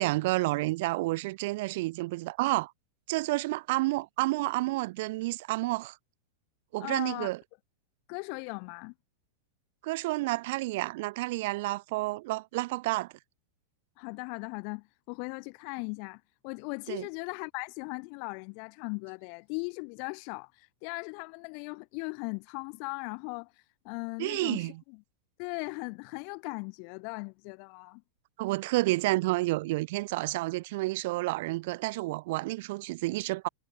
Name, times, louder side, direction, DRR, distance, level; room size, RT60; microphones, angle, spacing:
voice 1, 0.0-2.7 3.1-6.0 6.7-7.4 9.8-13.1 16.9-17.1 24.2-24.8 28.4-33.5, right 21 dB, 50° right, 5.3 m, -30 dB
voice 2, 6.8-7.3 8.1-8.9 14.0-24.7 25.4-28.0, left 40 dB or more, 45° left, 4.8 m, -38 dB
figure-of-eight pair, 90°, 0 cm